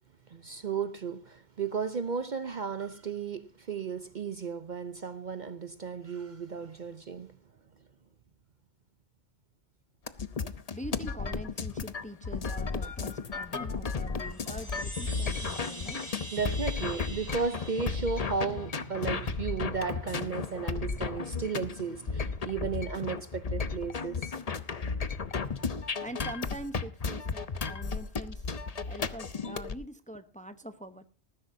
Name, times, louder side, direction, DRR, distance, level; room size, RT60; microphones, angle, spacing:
voice 1, 0.3-7.3 10.4-10.5 16.3-24.3, right 5 dB, 45° right, 0.8 m, -34 dB
sound 1, 10.1-29.8, left 5 dB, 35° left, 0.8 m, -34 dB
voice 2, 10.7-16.1 25.9-28.5 28.9-31.0, right 1 dB, 5° left, 0.8 m, -44 dB
Chime, 14.2-18.9, right 1 dB, 30° right, 2.8 m, -44 dB
20.0 x 14.5 x 2.7 m
omnidirectional pair, 1.2 m